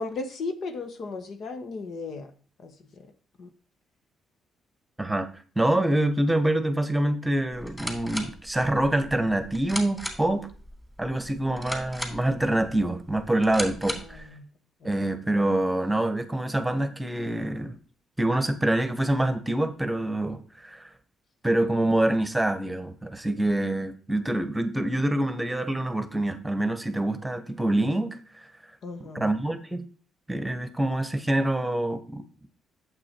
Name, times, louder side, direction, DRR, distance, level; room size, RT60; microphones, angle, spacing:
voice 1, 0.0-2.3 2.6-3.1 3.4-3.5 13.9-14.5 14.8-14.9 15.2-15.3 28.8-29.3, left 3 dB, 60° left, 7 dB, 1.3 m, -36 dB
voice 2, 5.6-10.5 11.0-14.3 14.8-17.8 18.2-20.9 21.4-28.5 29.1-29.8 30.3-32.2, right 1 dB, 10° right, 9 dB, 1.2 m, -26 dB
sound 1, 7.5-14.3, equal, 10° left, 3.2 m, -38 dB
8.6 x 7.4 x 4.5 m, 0.41 s
cardioid pair, 90°, 0 cm